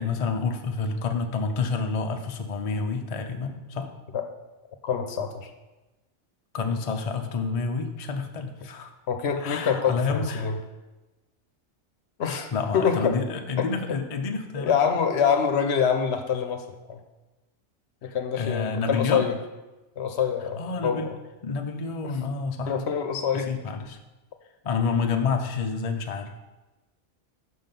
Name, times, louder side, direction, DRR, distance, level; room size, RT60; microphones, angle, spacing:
voice 1, 0.0-3.9 6.5-8.9 9.4-10.5 12.5-15.0 18.0-19.3 20.6-21.1 21.4-22.8 23.3-24.0 24.6-26.3, left 4 dB, 45° left, 5 dB, 0.5 m, -29 dB
voice 2, 4.8-5.5 9.1-10.6 12.2-13.2 13.6-14.0 14.6-17.0 18.0-19.4 20.0-21.1 22.7-23.5, left 7 dB, 70° left, 6 dB, 0.9 m, -26 dB
6.1 x 5.7 x 5.3 m, 1.1 s
omnidirectional pair, 1.2 m